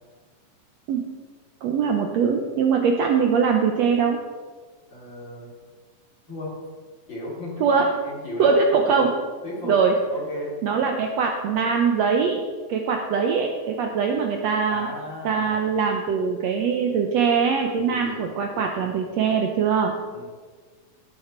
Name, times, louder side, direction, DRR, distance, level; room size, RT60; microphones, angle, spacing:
voice 1, 1.6-4.2 7.6-7.9 8.4-9.1 9.6-9.9 10.6-12.4 12.7-14.9 15.2-19.9, right 6 dB, 75° right, 3 dB, 1.6 m, -22 dB
voice 2, 4.9-5.5 6.3-6.5 7.1-7.7 8.0-8.6 9.4-9.8 10.1-10.5 14.7-15.6 17.8-18.3 20.1-20.2, left 1 dB, 35° left, -5 dB, 3.7 m, -34 dB
18.0 x 6.6 x 4.4 m, 1.5 s
omnidirectional pair, 3.9 m